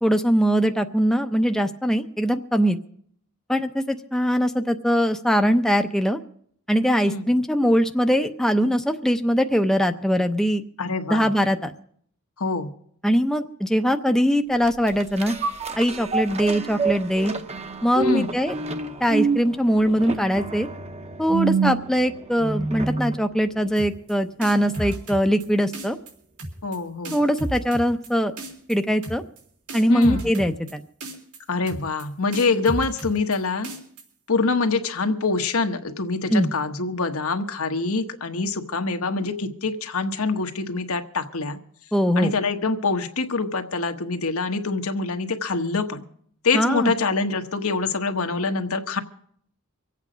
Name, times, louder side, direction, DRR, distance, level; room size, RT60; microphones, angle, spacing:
voice 1, 0.0-2.8 3.5-6.2 6.7-10.6 11.1-11.7 13.0-15.3 15.8-17.3 17.8-18.6 19.0-20.7 21.2-26.0 27.1-28.3 28.7-29.2 29.7-30.8 36.3-36.5 41.9-42.3 46.5-46.9, equal, ahead, 6 dB, 0.6 m, -21 dB
voice 2, 10.8-11.3 12.4-12.7 18.0-18.3 26.6-27.2 29.9-30.2 31.5-33.7 34.3-41.6 42.2-46.1 46.4-49.0, left 4 dB, 75° left, 7 dB, 1.2 m, -25 dB
sound 1, 14.6-23.2 23.7-23.8, right 4 dB, 30° right, 0.9 m, -28 dB
sound 2, 23.8-24.1 24.4-25.5 25.7-26.1 26.4-26.8 27.0-28.1 28.4-28.8 29.0-29.4 29.7-30.7 31.0-31.4 31.7-32.0 32.3-33.4 33.6-34.0, right 2 dB, 90° right, 3.6 m, -33 dB
24.5 x 8.4 x 5.0 m, 0.63 s
head